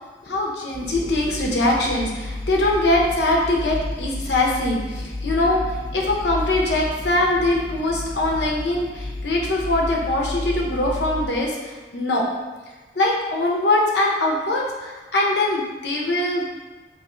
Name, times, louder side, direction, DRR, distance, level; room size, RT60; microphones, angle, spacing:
voice 1, 0.2-12.3 12.9-16.6, left 1 dB, 85° left, -1 dB, 0.7 m, -22 dB
sound 1, 0.7-11.3, left 2 dB, 30° left, 0.4 m, -32 dB
3.0 x 2.5 x 4.2 m, 1.3 s
head